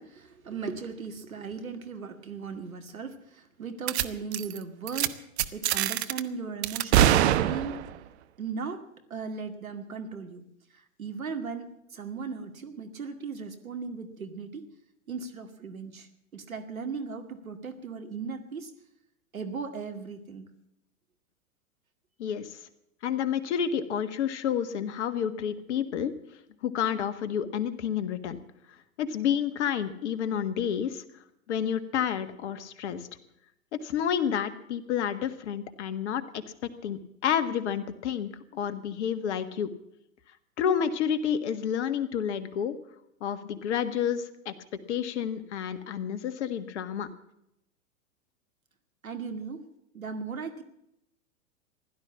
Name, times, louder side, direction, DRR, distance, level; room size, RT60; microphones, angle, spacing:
voice 1, 0.0-5.2 5.5-7.9 8.4-8.8 9.1-10.4 11.0-14.7 15.1-18.7 19.3-20.5 49.0-49.6 49.9-50.6, right 5 dB, 80° right, 8 dB, 2.3 m, -37 dB
sound 1, 3.9-4.1 4.3-4.6 4.9-5.1 5.4-6.2 6.6-8.0, right 11 dB, 50° right, 1.1 m, -24 dB
voice 2, 22.2-22.5 23.0-26.1 26.6-28.4 29.0-31.0 31.5-33.1 33.7-36.4 36.8-39.7 40.6-42.7 43.2-44.5 44.9-47.1, left 8 dB, 55° left, 11 dB, 1.7 m, -30 dB
16.0 x 12.0 x 7.1 m, 0.80 s
figure-of-eight pair, 105°, 41 cm